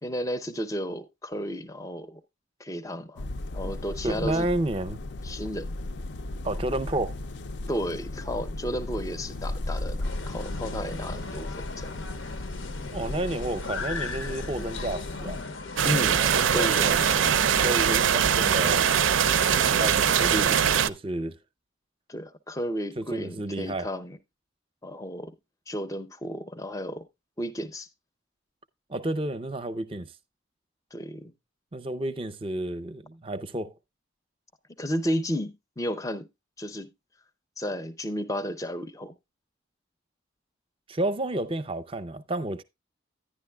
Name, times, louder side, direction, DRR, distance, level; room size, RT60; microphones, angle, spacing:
voice 1, 0.0-2.2 2.6-3.2 3.5-4.5 5.2-5.8 7.7-11.9 15.8-16.2 16.5-16.8 22.1-24.2 24.8-25.3 25.7-27.1 27.4-27.9 30.9-31.3 34.8-36.3 36.6-36.9 37.6-39.1, equal, 15° left, 0.5 m, -33 dB
sound 1, 3.2-15.4, left 2 dB, 65° left, 0.5 m, -36 dB
voice 2, 4.0-5.0 6.4-7.2 12.9-15.4 16.2-18.9 19.8-21.4 23.0-23.9 28.9-30.1 31.7-33.7 40.9-42.6, right 1 dB, 30° right, 0.5 m, -31 dB
sound 2, 10.0-20.9, left 3 dB, 90° left, 0.9 m, -38 dB
sound 3, 15.8-20.9, right 8 dB, 85° right, 0.4 m, -22 dB
10.5 x 10.0 x 2.2 m
head